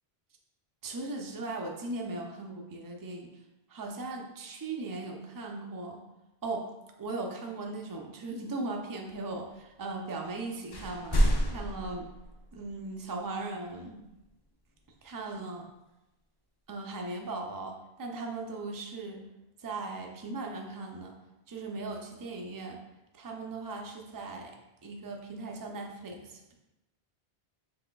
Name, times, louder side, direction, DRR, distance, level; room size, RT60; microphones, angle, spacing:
voice 1, 0.8-3.3 3.7-6.0 6.4-6.7 7.0-12.1 12.5-14.0 15.0-15.6 16.7-19.2 19.6-21.1 21.5-22.8 23.1-24.6 24.8-26.5, right 3 dB, 30° right, 1 dB, 0.4 m, -38 dB
sound 1, 10.2-10.4 10.7-12.8, equal, 40° left, 0.4 m, -29 dB
5.9 x 3.4 x 2.3 m, 0.98 s
omnidirectional pair, 1.1 m